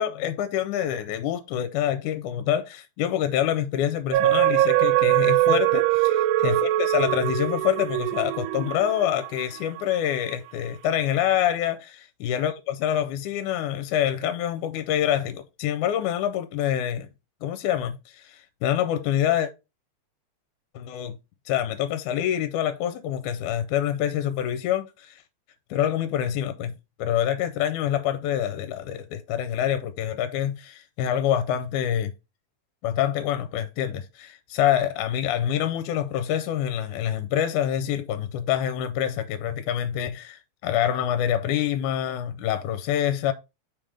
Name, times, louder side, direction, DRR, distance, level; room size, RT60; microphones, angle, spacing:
voice 1, 0.0-17.1 17.4-19.5 20.8-21.2 21.5-25.2 25.7-26.7 27.0-32.1 32.8-43.3, left 10 dB, 80° left, 2.0 m, -26 dB
sound 1, 4.1-9.8 10.3-10.4, right 15 dB, 85° right, 2.1 m, -22 dB
5.8 x 3.5 x 4.9 m
omnidirectional pair, 3.6 m